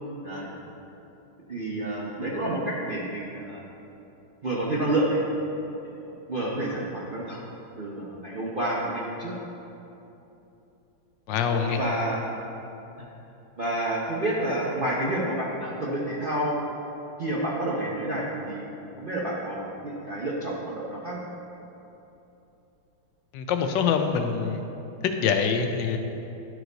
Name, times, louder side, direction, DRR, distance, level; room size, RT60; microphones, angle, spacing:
voice 1, 1.5-3.6 4.4-5.2 6.3-7.4 7.8-9.3 11.5-12.2 13.6-16.6 17.2-18.7 19.0-21.2, right 1 dB, 55° right, -6 dB, 0.6 m, -29 dB
voice 2, 11.3-11.8 23.3-24.6 25.0-26.0, left 6 dB, 80° left, 6 dB, 1.2 m, -25 dB
11.5 x 4.7 x 3.9 m, 2.9 s
omnidirectional pair, 2.0 m